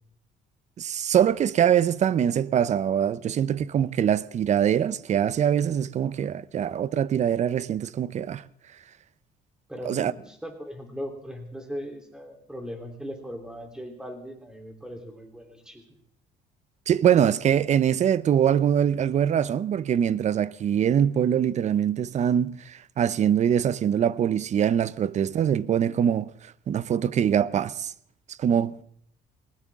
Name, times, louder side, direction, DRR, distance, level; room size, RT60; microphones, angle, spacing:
voice 1, 0.8-8.4 9.9-10.1 16.9-26.3 26.7-27.9 28.3-28.8, right 9 dB, 45° right, 0.6 m, -23 dB
voice 2, 9.7-15.8, equal, 5° right, 3.4 m, -38 dB
19.5 x 19.5 x 3.6 m
cardioid pair, 110°, 17 cm